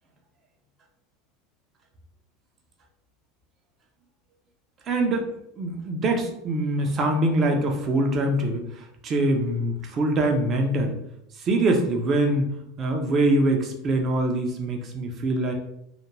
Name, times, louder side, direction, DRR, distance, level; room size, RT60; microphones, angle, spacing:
voice 1, 4.9-11.0 11.4-12.5 12.8-15.5, right 1 dB, 40° right, 3 dB, 0.6 m, -24 dB
2.4 x 2.1 x 3.1 m, 0.76 s
hypercardioid pair, 90°, 0 cm